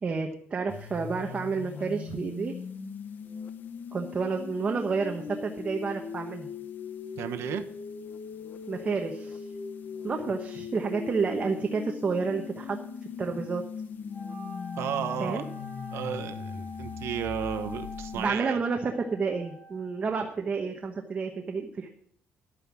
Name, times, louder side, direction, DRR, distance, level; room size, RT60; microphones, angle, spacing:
voice 1, 0.0-2.5 3.9-6.5 8.7-9.5 10.0-12.8 13.2-13.6 15.2-15.4 18.1-21.9, right 4 dB, 30° right, 4 dB, 1.1 m, -30 dB
sound 1, 0.7-18.3, left 6 dB, 45° left, 1.0 m, -39 dB
voice 2, 7.2-7.7 14.7-15.5 15.9-18.6, right 9 dB, 75° right, 7 dB, 1.0 m, -33 dB
Wind instrument woodwind instrument, 14.1-20.0, left 2 dB, ahead, 6.2 m, -45 dB
11.5 x 9.0 x 6.0 m, 0.67 s
cardioid pair, 155°, 4 cm